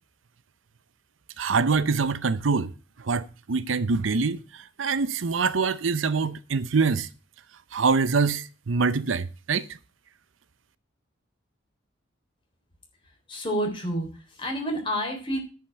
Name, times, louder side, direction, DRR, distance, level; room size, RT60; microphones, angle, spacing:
voice 1, 1.4-2.7 3.0-7.1 7.7-9.7, right 4 dB, 90° right, 0.7 m, -25 dB
voice 2, 13.3-15.4, equal, 25° left, 3.7 m, -29 dB
10.0 x 5.9 x 7.9 m
head